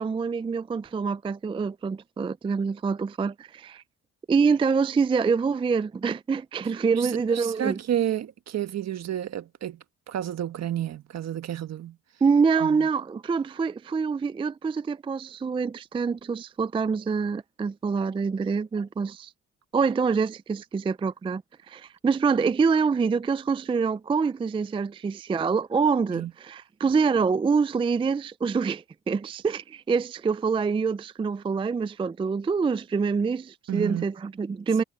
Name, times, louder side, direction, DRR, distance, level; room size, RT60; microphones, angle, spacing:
voice 1, 0.0-3.8 4.3-7.8 12.2-19.3 19.7-21.4 21.7-34.8, right 5 dB, 20° right, 0.4 m, -26 dB
voice 2, 6.9-12.0 12.6-12.9 26.1-26.3 33.7-34.0, right 11 dB, 60° right, 1.4 m, -31 dB
cardioid pair, 90°, 30 cm